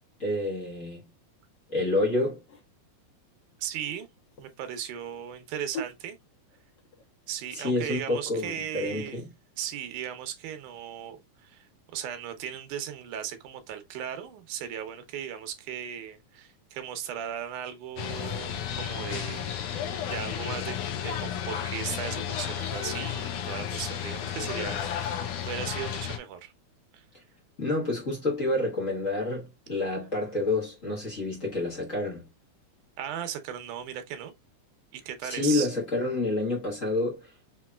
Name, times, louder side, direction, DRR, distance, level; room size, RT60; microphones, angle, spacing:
voice 1, 0.2-1.0 1.7-2.4 7.5-9.3 27.6-32.3 35.3-37.3, left 2 dB, 40° left, 1.2 m, -28 dB
sound 1, 2.1-2.7 3.7-8.5 8.9-9.0, left 2 dB, 70° left, 1.1 m, -45 dB
voice 2, 3.6-4.1 4.4-6.2 7.3-9.3 9.6-26.5 26.9-27.0 33.0-34.3 34.9-35.7, right 9 dB, 85° right, 2.4 m, -37 dB
sound 2, 18.0-26.2, left 9 dB, 90° left, 2.3 m, -33 dB
6.2 x 3.0 x 2.3 m
omnidirectional pair, 3.5 m